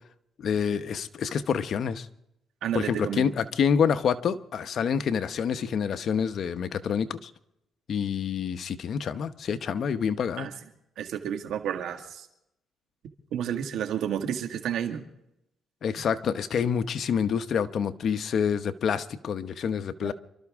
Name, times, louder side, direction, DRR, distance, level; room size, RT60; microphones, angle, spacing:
voice 1, 0.4-2.1 2.7-7.3 7.9-10.5 15.8-20.1, left 7 dB, 60° left, 0.9 m, -27 dB
voice 2, 2.6-3.3 10.4-10.5 11.0-12.3 13.3-15.0 20.0-20.1, right 9 dB, 80° right, 1.9 m, -31 dB
28.0 x 13.0 x 3.6 m
cardioid pair, 90°, 0 cm